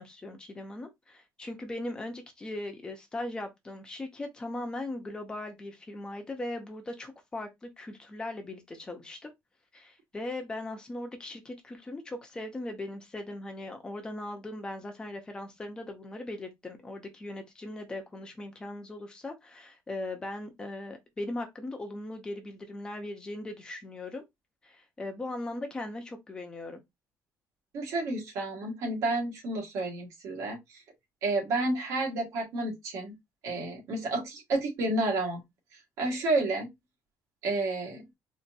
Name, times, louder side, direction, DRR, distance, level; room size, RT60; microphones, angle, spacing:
voice 1, 0.0-9.3 9.7-24.2 24.6-26.8, left 2 dB, 15° left, 0.8 m, -39 dB
voice 2, 27.7-30.8 31.2-33.2 33.4-35.4 36.0-36.7 37.4-38.1, right 2 dB, 60° right, 1.7 m, -30 dB
4.1 x 2.8 x 2.6 m
cardioid pair, 175°, 6 cm